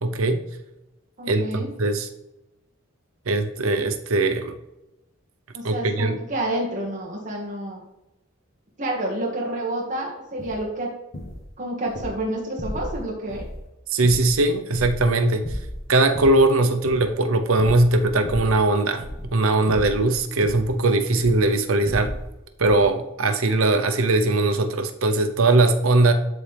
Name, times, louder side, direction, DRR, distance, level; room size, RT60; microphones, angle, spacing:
voice 1, 0.0-0.4 1.3-2.1 3.3-4.5 5.6-6.2 13.9-15.6 15.9-22.1 22.6-26.1, right 2 dB, 75° right, 7 dB, 0.8 m, -20 dB
voice 2, 1.2-1.7 5.5-7.8 8.8-10.9 11.6-13.4, right 1 dB, 35° right, -4 dB, 1.8 m, -29 dB
sound 1, 10.4-10.6 11.1-11.4 11.9-12.1 12.6-13.0 13.3-13.6 14.0-15.1 15.4-16.4 16.8-17.1 17.6-18.6 19.0-19.4 19.7-20.7 21.2-21.5 21.8-22.3 22.6-22.9, left 1 dB, 45° left, 1.4 m, -34 dB
12.5 x 4.3 x 3.4 m, 0.95 s
head